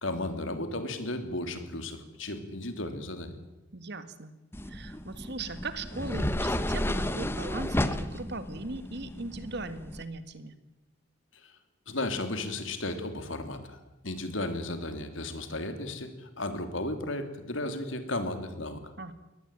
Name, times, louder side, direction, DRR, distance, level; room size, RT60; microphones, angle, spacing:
voice 1, 0.0-3.3 11.3-11.6 11.9-13.8 14.0-18.8, left 2 dB, 80° left, 8 dB, 3.2 m, -34 dB
voice 2, 3.7-4.4 4.6-10.6 19.0-19.1, right 3 dB, 60° right, 11 dB, 1.9 m, -39 dB
sound 1, 4.5-10.0, left 1 dB, 10° left, 1.1 m, -32 dB
22.5 x 19.0 x 9.1 m, 1.0 s
head